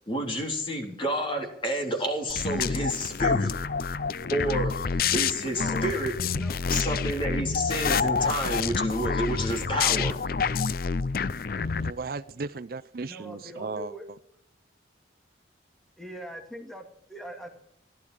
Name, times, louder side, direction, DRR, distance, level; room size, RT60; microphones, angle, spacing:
voice 1, 0.1-3.5 4.3-4.7 5.1-6.1 6.7-10.2, equal, 30° left, 3.6 m, -29 dB
sound 1, 2.3-11.9, left 5 dB, 55° left, 0.5 m, -28 dB
voice 2, 5.5-5.8 6.2-6.5 13.0-14.1 16.0-17.5, equal, ahead, 2.0 m, -41 dB
voice 3, 11.8-13.9, right 4 dB, 55° right, 0.5 m, -36 dB
16.0 x 12.0 x 6.3 m
head